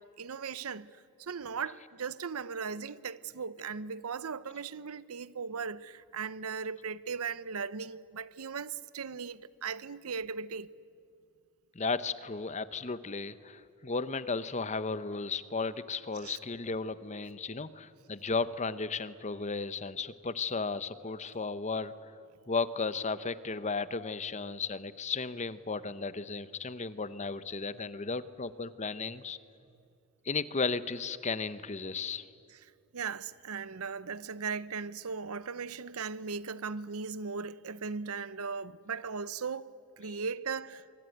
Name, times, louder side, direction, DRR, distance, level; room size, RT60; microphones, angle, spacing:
voice 1, 0.0-10.7 16.2-16.4 32.5-32.6 32.9-40.9, right 5 dB, 90° right, 0.7 m, -38 dB
voice 2, 11.7-22.1 22.5-29.4 30.2-32.3 40.0-40.2, left 4 dB, 30° left, 0.8 m, -35 dB
25.5 x 24.0 x 9.3 m
head